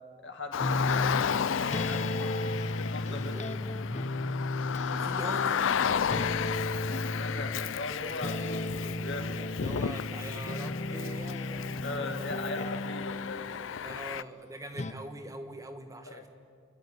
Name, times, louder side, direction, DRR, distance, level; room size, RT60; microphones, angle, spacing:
voice 1, 0.2-2.0 2.8-3.4 5.0-5.1 6.9-9.4 10.9-11.0 11.8-14.0 16.1-16.3, left 2 dB, 70° left, 4 dB, 2.3 m, -40 dB
Car, 0.5-14.2, left 7 dB, 90° left, 0.5 m, -33 dB
sound 1, 0.6-7.8 8.2-13.6 14.7-14.9, left 2 dB, 35° left, 0.9 m, -34 dB
voice 2, 3.1-3.7 4.9-6.5 9.5-12.3 13.8-16.3, right 1 dB, 15° right, 6 dB, 1.3 m, -43 dB
29.0 x 12.5 x 9.7 m, 2.2 s
head